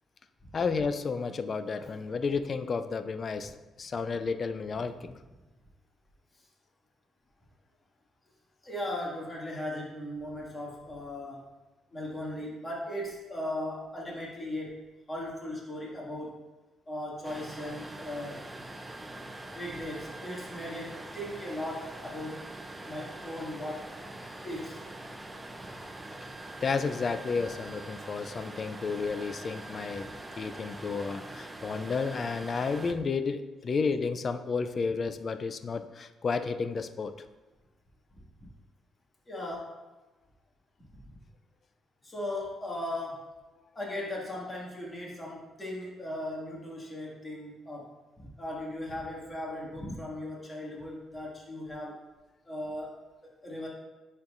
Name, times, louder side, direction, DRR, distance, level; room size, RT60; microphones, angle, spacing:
voice 1, 0.5-3.5 3.8-5.0 26.6-37.1, left 5 dB, 45° left, 10 dB, 0.4 m, -32 dB
voice 2, 8.6-11.4 11.9-14.8 15.1-16.4 16.9-18.4 19.5-22.4 22.9-23.8 24.4-24.8 25.6-25.7 38.1-38.2 39.3-39.7 42.0-43.3 43.8-47.9 48.2-52.0 52.5-52.9 53.4-53.7, left 1 dB, 20° left, -4 dB, 2.2 m, -37 dB
sound 1, 17.2-32.9, right 1 dB, 15° right, 0.6 m, -43 dB
10.5 x 4.5 x 2.6 m, 1.1 s
cardioid pair, 90°, 0 cm